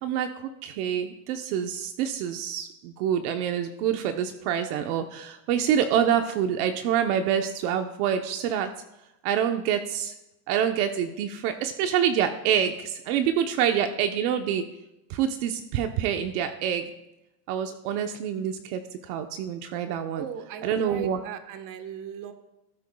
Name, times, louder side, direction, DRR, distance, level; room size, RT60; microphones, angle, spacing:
voice 1, 0.0-8.7 9.2-10.1 10.5-14.6 15.1-16.9 17.5-20.2 20.6-21.2, right 9 dB, 65° right, 6 dB, 1.0 m, -26 dB
voice 2, 20.1-22.3, right 8 dB, 40° right, 7 dB, 1.3 m, -38 dB
18.5 x 9.3 x 2.3 m, 0.91 s
supercardioid pair, 130°, 48 cm